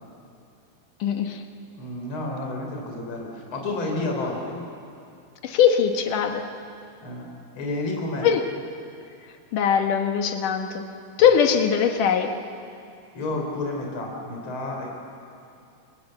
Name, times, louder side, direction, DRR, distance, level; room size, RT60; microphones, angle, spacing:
voice 1, 1.0-1.4 5.4-6.4 8.2-8.4 9.5-10.8 11.2-12.3, left 7 dB, 65° left, 5 dB, 2.5 m, -21 dB
voice 2, 1.8-4.6 7.0-7.3 7.5-8.3 11.2-11.3 13.1-14.9, left 2 dB, 30° left, 0 dB, 4.4 m, -30 dB
27.5 x 26.5 x 7.9 m, 2.5 s
omnidirectional pair, 4.7 m